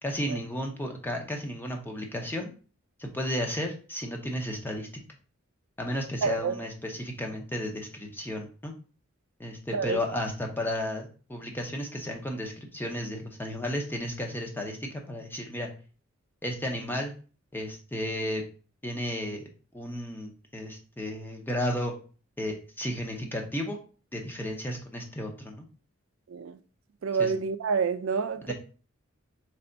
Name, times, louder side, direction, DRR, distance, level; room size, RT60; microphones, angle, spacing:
voice 1, 0.0-2.5 3.0-4.9 5.8-8.7 9.4-15.7 16.4-17.1 17.5-18.4 18.8-19.4 19.7-21.9 22.4-23.8 24.1-25.7 27.2-27.3 28.5-28.6, left 1 dB, 10° left, 0.7 m, -33 dB
voice 2, 6.2-6.5 9.7-10.0 26.3-26.6 27.0-28.5, right 5 dB, 75° right, 0.4 m, -28 dB
3.4 x 3.4 x 3.9 m
head